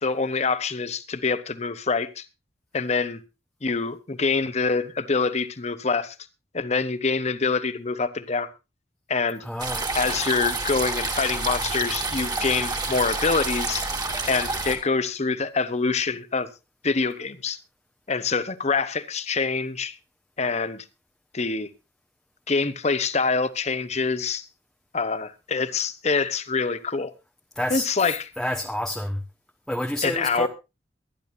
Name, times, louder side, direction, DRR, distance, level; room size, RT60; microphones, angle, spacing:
voice 1, 0.0-2.2 2.7-3.2 3.6-6.1 6.5-8.5 9.1-9.4 9.9-13.8 14.3-16.5 16.8-17.6 18.1-19.9 20.4-20.8 21.3-21.7 22.5-24.4 24.9-27.1 27.7-28.3 30.0-30.5, left 4 dB, 40° left, 0.9 m, -25 dB
voice 2, 9.4-9.9 27.6-27.9 28.4-29.2 29.7-30.5, left 1 dB, 5° left, 0.8 m, -29 dB
sound 1, 9.6-14.8, right 3 dB, 25° right, 2.2 m, -28 dB
23.0 x 10.5 x 2.6 m
head